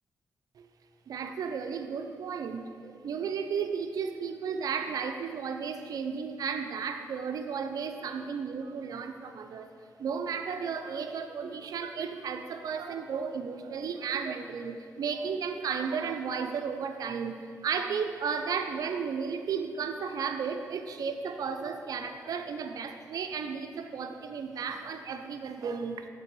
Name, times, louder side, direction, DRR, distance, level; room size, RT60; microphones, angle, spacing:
voice 1, 1.1-9.7 10.0-26.1, right 6 dB, 70° right, 7 dB, 0.4 m, -34 dB
6.7 x 3.3 x 6.0 m, 2.2 s
cardioid pair, 55°, 6 cm